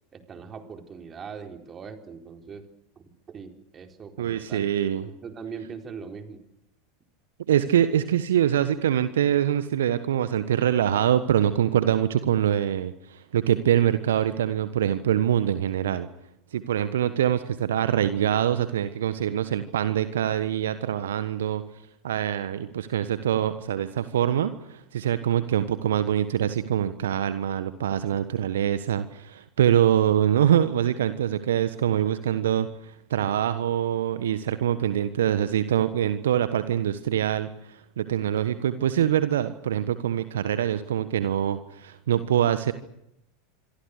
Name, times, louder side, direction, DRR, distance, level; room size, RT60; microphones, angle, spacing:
voice 1, 0.1-2.6 3.0-4.7 5.0-6.4, right 6 dB, 30° right, 5 dB, 4.2 m, -41 dB
voice 2, 4.2-5.1 7.5-16.1 16.5-21.6 22.0-42.7, right 10 dB, 70° right, 12 dB, 1.3 m, -24 dB
27.0 x 23.5 x 6.7 m, 0.80 s
figure-of-eight pair, 85°, 0 cm